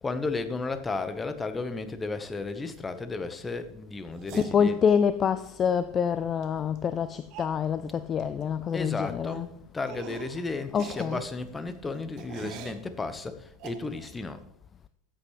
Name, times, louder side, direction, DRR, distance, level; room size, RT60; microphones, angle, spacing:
voice 1, 0.0-4.8 8.7-14.4, left 3 dB, 15° left, 1.2 m, -34 dB
sound 1, 4.2-5.1 6.4-6.5 6.8-6.9 7.3-7.6 8.2-8.4 8.7-8.9 9.3-9.4 9.9-10.4 10.7-12.8 13.6-14.2, right 9 dB, 50° right, 1.2 m, -43 dB
voice 2, 4.3-9.5 10.7-11.2, left 7 dB, 30° left, 0.5 m, -26 dB
14.0 x 8.3 x 3.2 m
hypercardioid pair, 90°, 0 cm